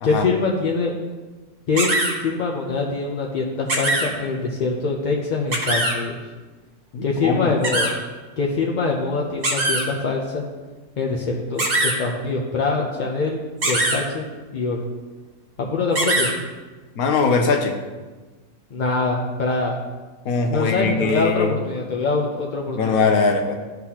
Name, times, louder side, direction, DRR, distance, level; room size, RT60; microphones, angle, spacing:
voice 1, 0.0-0.9 1.7-6.2 7.0-7.9 8.4-10.4 11.0-14.3 14.5-14.8 15.6-16.3 18.7-19.8 20.5-23.1, left 3 dB, 55° left, -1 dB, 0.5 m, -24 dB
sound 1, 1.8-2.1 3.7-4.1 5.5-5.9 7.6-7.9 9.4-9.8 11.6-12.0 13.6-14.0 16.0-16.3, right 1 dB, 45° right, 1.1 m, -21 dB
voice 2, 6.9-7.5 17.0-17.8 20.2-21.5 22.7-23.6, left 4 dB, 85° left, 4 dB, 1.2 m, -21 dB
11.0 x 3.9 x 2.9 m, 1.3 s
omnidirectional pair, 1.5 m